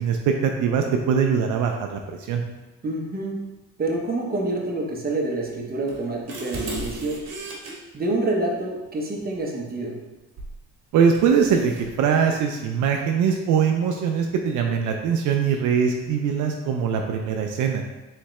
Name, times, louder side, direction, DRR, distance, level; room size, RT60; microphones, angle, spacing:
voice 1, 0.0-2.0 2.3-2.4 10.9-17.8, right 6 dB, 75° right, 3 dB, 0.5 m, -22 dB
voice 2, 2.8-3.4 3.8-7.2 7.9-10.0, right 2 dB, 30° right, 0 dB, 0.8 m, -27 dB
sound 1, 5.9-7.7 10.4-10.6 11.1-11.9, right 1 dB, 60° right, 1.1 m, -35 dB
3.6 x 3.3 x 3.1 m, 1.1 s
cardioid pair, 90°, 30 cm